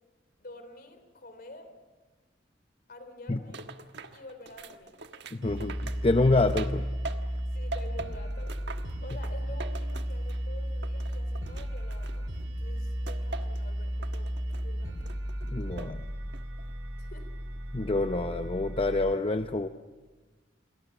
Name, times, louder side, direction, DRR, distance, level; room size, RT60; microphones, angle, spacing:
voice 1, 0.4-1.7 2.9-3.6 4.1-4.9 5.5-5.7 7.5-8.5 9.0-12.2 12.6-14.4 14.6-15.0 17.0-17.3, left 1 dB, 55° left, 9 dB, 3.5 m, -48 dB
sound 1, 3.5-7.4 7.7-10.5 10.8-12.5 13.1-13.6 14.0-14.7 15.1-16.0 16.3-16.7, right 3 dB, 65° right, 1.4 m, -43 dB
voice 2, 5.3-5.7 6.0-6.8 15.5-16.0 17.7-19.7, left 2 dB, 30° left, 8 dB, 0.7 m, -26 dB
sound 2, 5.4-19.1, equal, 85° right, 4.2 m, -34 dB
29.0 x 23.0 x 7.2 m, 1.3 s
head